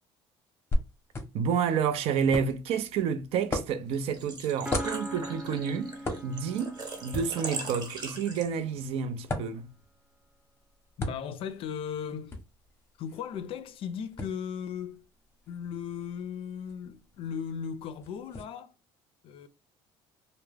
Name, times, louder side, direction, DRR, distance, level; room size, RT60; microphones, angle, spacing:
sound 1, 0.7-18.4, left 1 dB, 25° left, 0.7 m, -39 dB
voice 1, 1.3-6.0 6.2-9.7, right 7 dB, 65° right, 0.5 m, -29 dB
Engine / Trickle dribble / Fill (with liquid), 3.9-8.8, right 3 dB, 40° right, 0.9 m, -40 dB
Piano, 4.7-8.3, equal, 10° right, 0.4 m, -42 dB
voice 2, 11.0-12.4 13.0-15.1 15.5-18.7 19.2-19.5, left 8 dB, 55° left, 0.4 m, -37 dB
2.2 x 2.1 x 3.2 m
cardioid pair, 110°, 11 cm